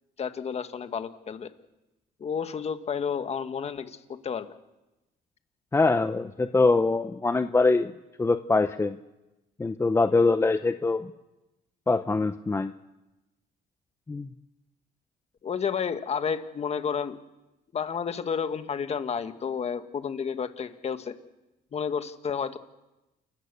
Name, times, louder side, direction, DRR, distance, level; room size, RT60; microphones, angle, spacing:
voice 1, 0.2-1.5 2.2-4.5 15.4-17.2 17.7-21.1 21.7-22.6, left 6 dB, 40° left, 9 dB, 1.5 m, -31 dB
voice 2, 5.7-7.9 8.2-9.0 9.6-11.1 11.9-12.7 14.1-14.3, left 3 dB, 15° left, 10 dB, 0.7 m, -23 dB
29.0 x 15.0 x 6.8 m, 1.0 s
cardioid pair, 110°, 17 cm